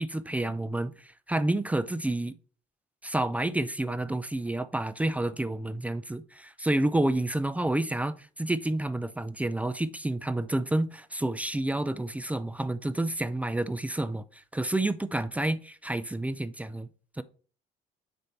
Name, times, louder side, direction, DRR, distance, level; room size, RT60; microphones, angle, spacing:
voice 1, 0.0-2.3 3.0-16.9 17.2-17.3, right 1 dB, 10° right, 0.4 m, -29 dB
6.6 x 4.1 x 4.5 m
cardioid pair, 110°, 17 cm